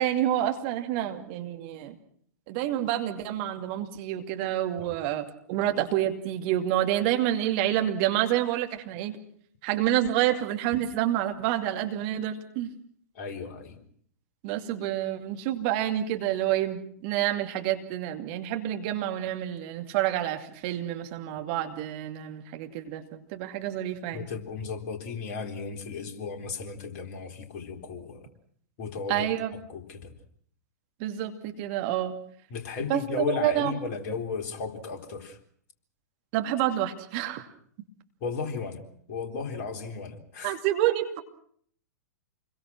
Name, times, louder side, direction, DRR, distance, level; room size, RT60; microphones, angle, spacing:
voice 1, 0.0-2.0 2.5-9.2 9.6-12.7 14.4-23.0 23.3-24.3 29.1-29.5 31.0-32.1 32.9-33.7 36.3-37.5 40.4-41.2, right 12 dB, 40° right, 5 dB, 2.5 m, -28 dB
voice 2, 13.1-13.8 24.1-28.3 28.8-30.1 32.5-35.4 38.2-38.8 39.1-40.6, left 5 dB, 45° left, 4 dB, 3.9 m, -35 dB
28.5 x 22.0 x 6.2 m, 0.62 s
figure-of-eight pair, 105°, 9 cm